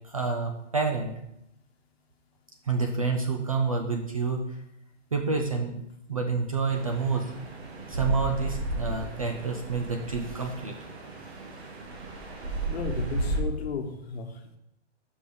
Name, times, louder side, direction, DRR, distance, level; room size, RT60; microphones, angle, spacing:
voice 1, 0.0-1.1 2.7-4.4 5.1-5.8 6.1-7.3 7.9-10.8, right 4 dB, 30° right, 3 dB, 0.4 m, -28 dB
sound 1, 6.7-13.4, right 2 dB, 55° right, 1.3 m, -34 dB
voice 2, 12.7-14.6, left 4 dB, 55° left, 5 dB, 1.1 m, -34 dB
5.3 x 4.2 x 4.9 m, 0.79 s
hypercardioid pair, 165°, 36 cm